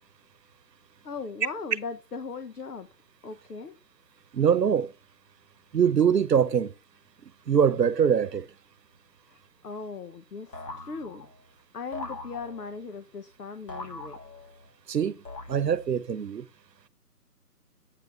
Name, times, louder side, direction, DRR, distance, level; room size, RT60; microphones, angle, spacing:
voice 1, 1.0-2.9 3.2-3.8 9.3-11.2 11.7-14.2, left 4 dB, 70° left, 1.2 m, -38 dB
voice 2, 4.3-4.9 5.7-6.7 7.5-8.5 14.9-15.1 15.5-16.4, right 7 dB, 85° right, 0.9 m, -23 dB
sound 1, 10.5-11.5 11.9-12.9 13.7-14.7 15.2-16.0, left 2 dB, 90° left, 2.1 m, -41 dB
8.9 x 3.6 x 5.3 m
hypercardioid pair, 165°, 48 cm